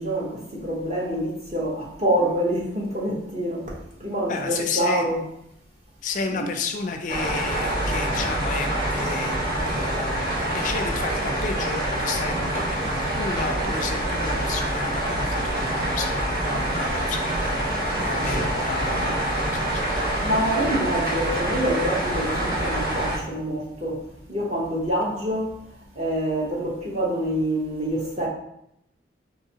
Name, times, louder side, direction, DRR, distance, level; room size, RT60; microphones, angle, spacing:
voice 1, 0.0-5.2 6.3-6.5 20.2-25.5 26.0-28.3, right 1 dB, 35° right, -3 dB, 0.9 m, -26 dB
voice 2, 4.3-5.1 6.0-9.4 9.6-19.9, left 4 dB, 45° left, 4 dB, 0.3 m, -32 dB
sound 1, 7.1-23.2, right 1 dB, 55° right, 1.2 m, -26 dB
4.7 x 2.7 x 2.7 m, 0.77 s
head